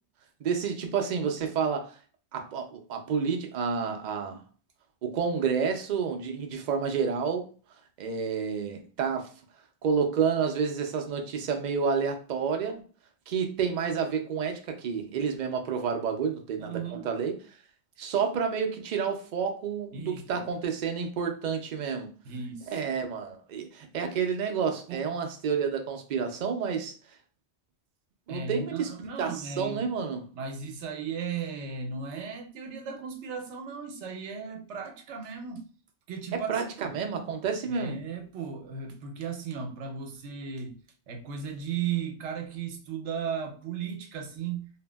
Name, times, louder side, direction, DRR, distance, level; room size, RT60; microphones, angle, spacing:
voice 1, 0.4-1.9 2.3-4.4 5.0-7.5 8.0-9.3 9.8-12.8 13.3-17.4 18.0-22.1 22.7-26.9 28.3-28.9 29.2-30.2 36.3-38.0, right 6 dB, 55° right, 0.5 m, -29 dB
voice 2, 16.6-17.1 19.9-20.2 22.2-22.7 24.9-25.1 28.3-29.9 30.3-35.7 36.1-36.9 37.7-40.8 41.1-44.7, right 6 dB, 80° right, 0.9 m, -36 dB
2.7 x 2.6 x 2.2 m
omnidirectional pair, 1.2 m